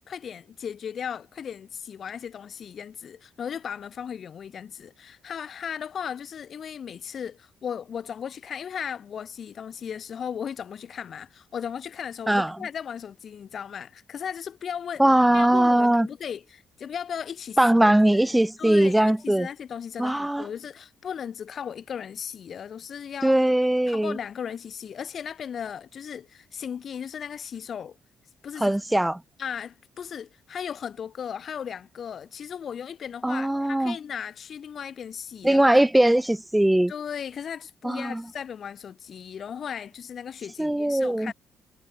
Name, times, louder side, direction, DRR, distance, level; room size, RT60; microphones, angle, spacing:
voice 1, 0.1-15.1 15.3-17.6 18.1-18.3 18.6-23.4 23.9-28.0 28.4-28.8 29.4-35.8 36.9-41.3, left 8 dB, 55° left, 0.5 m, -36 dB
voice 2, 12.3-12.6 15.0-16.1 17.6-19.5 20.0-20.5 23.2-24.2 28.6-29.2 33.2-34.0 35.4-36.9 37.8-38.2 40.6-41.3, right 1 dB, 5° right, 0.5 m, -20 dB
cardioid pair, 90°, 0 cm